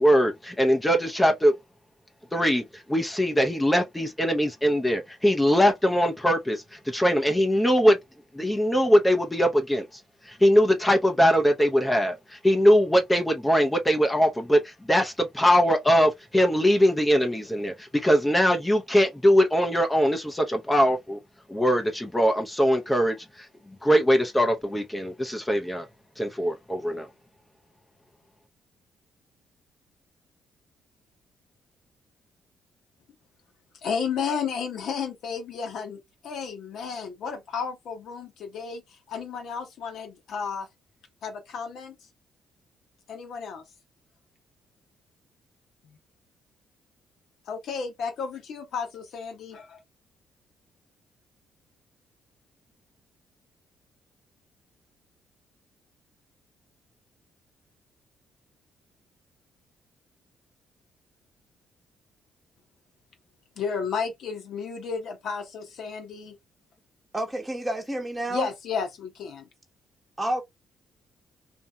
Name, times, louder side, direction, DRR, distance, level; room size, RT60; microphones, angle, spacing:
voice 1, 0.0-1.5 2.3-8.0 8.3-21.2 21.5-23.5 23.8-25.9 26.2-27.1, equal, 10° left, 0.6 m, -22 dB
voice 2, 33.8-38.8 39.1-40.7 41.2-41.9 43.1-43.6 45.8-46.0 47.5-49.8 63.6-66.4 68.3-69.5, left 6 dB, 75° left, 0.9 m, -32 dB
voice 3, 67.1-68.5 70.2-70.4, right 1 dB, 10° right, 0.9 m, -29 dB
2.8 x 2.6 x 2.2 m
cardioid pair, 90°, 0 cm